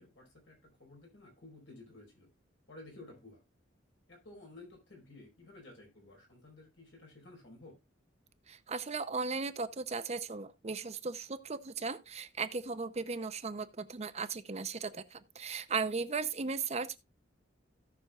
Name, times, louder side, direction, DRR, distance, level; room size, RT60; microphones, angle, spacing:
voice 1, 0.0-2.3 2.7-3.4 4.1-7.8, left 2 dB, 75° left, 4.9 m, -54 dB
voice 2, 8.5-17.0, right 4 dB, 35° right, 0.7 m, -37 dB
17.0 x 6.2 x 2.4 m
head